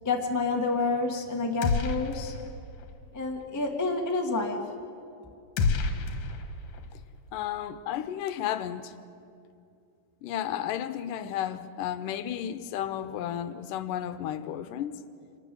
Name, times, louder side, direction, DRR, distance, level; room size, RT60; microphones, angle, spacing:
voice 1, 0.0-2.3 3.1-4.6, left 3 dB, 20° left, 0.5 m, -28 dB
sound 1, 1.6-2.5 2.8-2.9 5.6-6.9, left 4 dB, 60° left, 2.7 m, -29 dB
voice 2, 7.3-8.9 10.2-15.0, left 10 dB, 75° left, 2.3 m, -33 dB
26.0 x 19.0 x 7.7 m
omnidirectional pair, 4.0 m